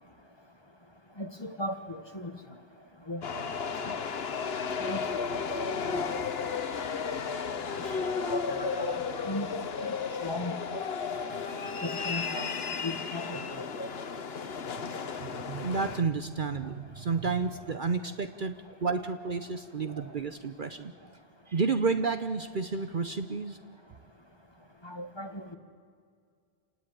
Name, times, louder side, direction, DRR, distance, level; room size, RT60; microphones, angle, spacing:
voice 1, 1.2-2.3 3.1-3.4 3.9-4.0 4.8-5.3 8.2-9.0 9.3-9.6 10.2-10.8 11.8-12.5 12.8-13.9 24.8-25.4, left 1 dB, 20° left, 7 dB, 1.4 m, -37 dB
sound 1, 3.2-16.0, left 5 dB, 60° left, 1.3 m, -33 dB
voice 2, 7.8-8.2 11.3-11.4 15.0-21.1 21.5-23.6, right 4 dB, 50° right, 9 dB, 0.9 m, -31 dB
28.0 x 18.5 x 9.2 m, 2.1 s
omnidirectional pair, 1.2 m